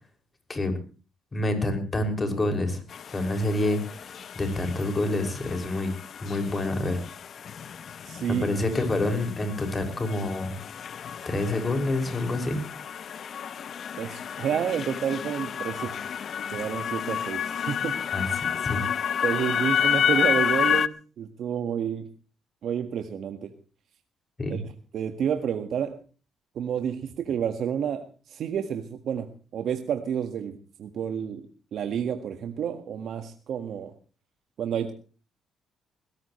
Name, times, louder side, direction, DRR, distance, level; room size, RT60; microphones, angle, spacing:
voice 1, 1.3-2.8 3.1-5.9 6.2-7.0 8.4-10.5 11.2-12.6 18.1-18.8 24.4-24.6, left 2 dB, 25° left, 6 dB, 6.2 m, -27 dB
sound 1, 2.9-20.9, left 8 dB, 60° left, 0.8 m, -30 dB
voice 2, 8.0-8.5 14.0-15.9 16.5-18.1 19.2-22.1 22.6-23.5 24.5-24.6 24.9-26.0 26.5-31.4 31.7-33.9 34.6-34.9, right 8 dB, 65° right, 7 dB, 1.7 m, -30 dB
21.0 x 18.0 x 3.2 m, 0.37 s
cardioid pair, 90°, 0 cm